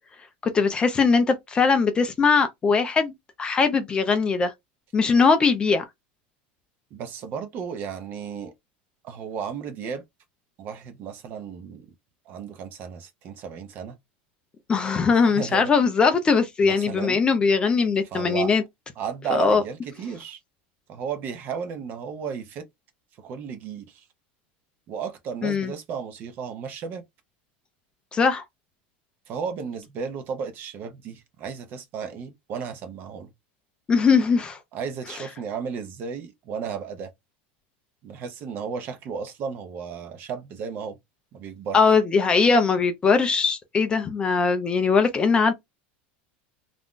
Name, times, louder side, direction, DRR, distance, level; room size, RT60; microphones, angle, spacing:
voice 1, 0.5-3.1 3.4-4.5 4.9-5.8 14.7-18.6 19.3-19.6 25.4-25.7 28.1-28.4 33.9-34.6 41.7-45.5, left 5 dB, 15° left, 0.4 m, -20 dB
voice 2, 6.9-8.5 9.0-10.0 10.6-11.9 12.3-13.9 15.1-15.7 16.6-17.2 18.1-18.5 19.0-20.4 20.9-22.7 23.2-24.0 24.9-27.0 29.3-33.3 34.7-37.1 38.0-41.0 41.3-42.0, right 6 dB, 35° right, 0.6 m, -34 dB
2.5 x 2.1 x 3.6 m
supercardioid pair, 155°, 6 cm